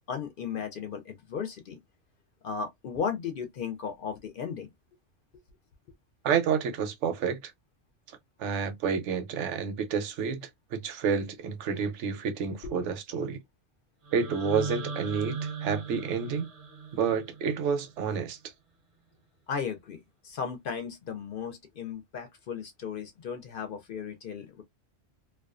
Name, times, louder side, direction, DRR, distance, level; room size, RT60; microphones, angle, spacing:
voice 1, 0.1-1.8 2.4-4.7 12.6-12.7 19.5-24.6, left 6 dB, 60° left, 0.6 m, -35 dB
voice 2, 6.2-7.5 8.4-13.4 14.1-16.5 16.9-18.4, right 6 dB, 80° right, 0.9 m, -29 dB
sound 1, 14.0-18.1, right 4 dB, 40° right, 0.5 m, -38 dB
2.3 x 2.2 x 2.3 m
omnidirectional pair, 1.2 m